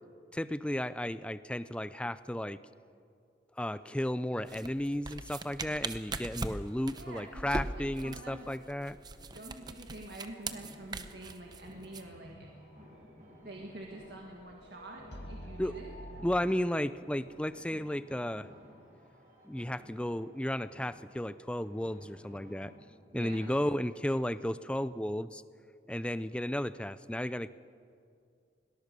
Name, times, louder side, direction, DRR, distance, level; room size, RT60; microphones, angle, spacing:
voice 1, 0.3-2.6 3.6-9.0 15.6-15.7 16.2-18.5 19.4-22.7 23.1-25.4 25.9-27.5, left 1 dB, 5° left, 14 dB, 0.4 m, -34 dB
sound 1, 4.5-12.0, right 3 dB, 25° right, 0.8 m, -40 dB
voice 2, 6.9-8.5 9.3-12.5 13.4-15.9 23.1-23.5, right 1 dB, 70° right, 0 dB, 1.9 m, -47 dB
sound 2, 8.0-16.3, equal, 80° left, 2.1 m, -52 dB
sound 3, 10.1-22.7, equal, 45° right, 6.2 m, -57 dB
21.5 x 18.5 x 6.8 m, 2.3 s
head